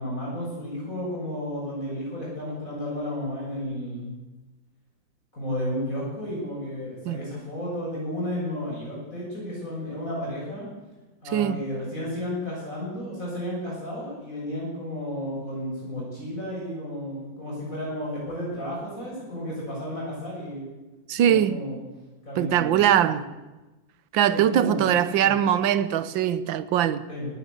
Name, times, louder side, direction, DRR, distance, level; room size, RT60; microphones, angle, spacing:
voice 1, 0.0-4.1 5.3-10.7 11.2-20.7 21.2-21.8 22.2-23.2 24.3-25.4 27.1-27.3, equal, 45° left, 7.6 m, -33 dB
voice 2, 21.1-21.6 22.4-23.2 24.1-27.0, right 10 dB, 85° right, 1.6 m, -21 dB
19.5 x 16.5 x 8.4 m
omnidirectional pair, 2.0 m